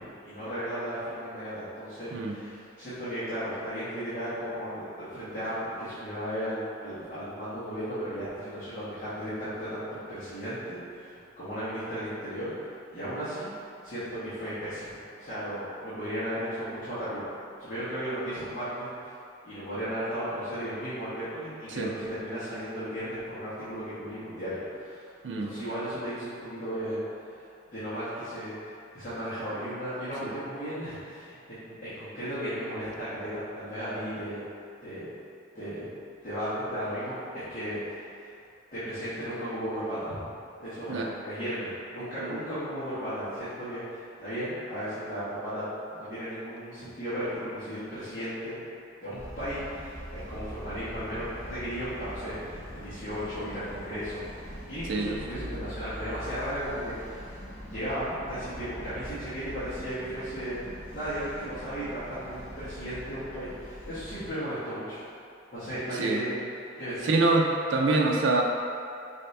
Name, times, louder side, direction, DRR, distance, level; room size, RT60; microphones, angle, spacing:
voice 1, 0.2-12.5 12.9-13.5 13.8-17.3 17.6-19.1 19.4-25.1 25.4-27.0 27.3-34.4 34.8-35.1 35.5-35.9 36.2-38.3 38.7-40.2 40.6-45.6 45.9-48.6 49.0-57.3 57.7-65.1 65.5-66.4 66.8-67.1, equal, 45° left, -16 dB, 1.4 m, -35 dB
sound 1, 49.1-64.3, equal, 10° left, 1.4 m, -43 dB
voice 2, 65.9-66.2 67.0-68.4, right 3 dB, 70° right, 0 dB, 0.4 m, -25 dB
5.6 x 2.8 x 3.3 m, 2.5 s
head